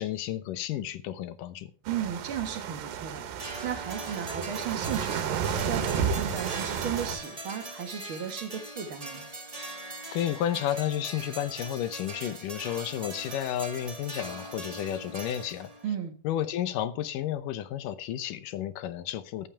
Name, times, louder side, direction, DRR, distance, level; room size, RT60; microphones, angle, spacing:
voice 1, 0.0-1.7 10.1-15.7 16.2-19.5, left 11 dB, 75° left, 13 dB, 2.4 m, -32 dB
voice 2, 1.9-5.4 5.7-9.3 15.8-16.1, right 8 dB, 45° right, 6 dB, 1.9 m, -35 dB
sound 1, 1.9-7.2, right 7 dB, 80° right, 3.0 m, -32 dB
sound 2, 3.4-15.9, right 1 dB, 20° right, 1.0 m, -41 dB
14.0 x 11.5 x 3.4 m, 0.35 s
omnidirectional pair, 4.1 m